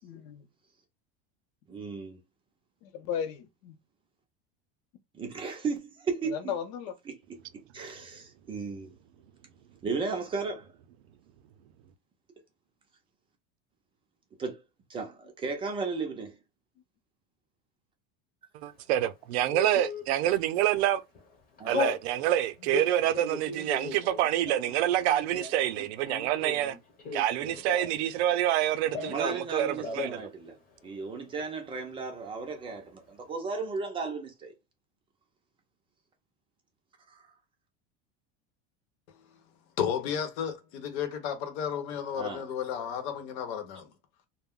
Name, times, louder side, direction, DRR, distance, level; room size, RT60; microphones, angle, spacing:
voice 1, 0.0-0.5 2.8-3.8 6.2-7.0, left 8 dB, 50° left, 0.6 m, -35 dB
voice 2, 1.7-2.2 5.2-6.3 7.1-7.2 7.7-8.9 9.8-10.6 14.4-14.6 14.9-16.3 21.6-21.7 29.1-30.5 30.8-33.0 33.3-34.5 42.2-42.4, right 4 dB, 15° right, 0.4 m, -34 dB
voice 3, 18.6-21.0 21.7-26.8 27.1-30.3, right 12 dB, 90° right, 0.5 m, -27 dB
Telephone, 19.5-20.0 20.6-20.9 21.1-22.0 22.6-28.1 28.3-29.4 29.7-30.2 30.5-30.6 30.8-31.4, left 3 dB, 25° left, 0.9 m, -36 dB
voice 4, 39.8-43.9, left 8 dB, 80° left, 0.9 m, -33 dB
2.3 x 2.1 x 3.5 m
cardioid pair, 160°, 32 cm